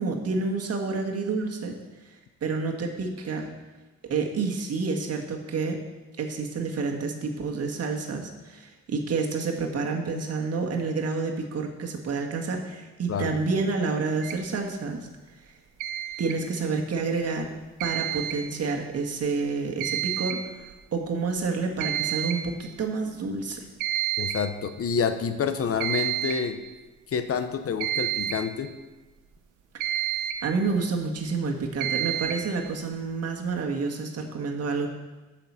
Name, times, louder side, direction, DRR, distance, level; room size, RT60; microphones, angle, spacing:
voice 1, 0.0-1.7 2.4-3.5 4.1-5.8 6.2-15.0 16.2-17.5 17.8-20.7 20.9-23.6 29.7-30.0 30.4-34.9, right 4 dB, 55° right, 2 dB, 1.6 m, -29 dB
sound 1, 14.2-14.4 15.8-16.4 17.8-18.4 19.8-20.4 20.7-20.8 21.4-21.5 21.8-22.4 23.8-24.4 25.8-26.5 27.8-28.5 29.8-30.5 31.8-32.5, right 11 dB, 90° right, 0.8 m, -29 dB
voice 2, 24.2-26.6 27.1-28.7, left 6 dB, 50° left, 9 dB, 0.8 m, -28 dB
7.8 x 5.9 x 7.3 m, 1.2 s
cardioid pair, 90°, 30 cm